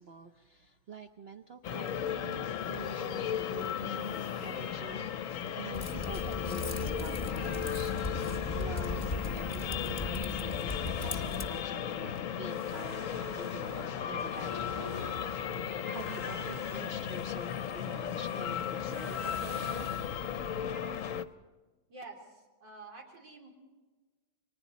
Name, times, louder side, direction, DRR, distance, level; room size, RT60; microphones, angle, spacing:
voice 1, 0.0-7.9 8.5-20.2, right 4 dB, 55° right, 5 dB, 0.7 m, -48 dB
sound 1, 1.6-21.3, left 9 dB, 55° left, 1.0 m, -35 dB
Typing, 5.7-11.5, left 3 dB, 25° left, 1.1 m, -37 dB
sound 2, 7.5-21.4, right 1 dB, 25° right, 1.1 m, -51 dB
voice 2, 21.9-23.5, right 3 dB, 75° right, -1 dB, 4.6 m, -49 dB
30.0 x 24.0 x 4.1 m, 1.3 s
omnidirectional pair, 2.0 m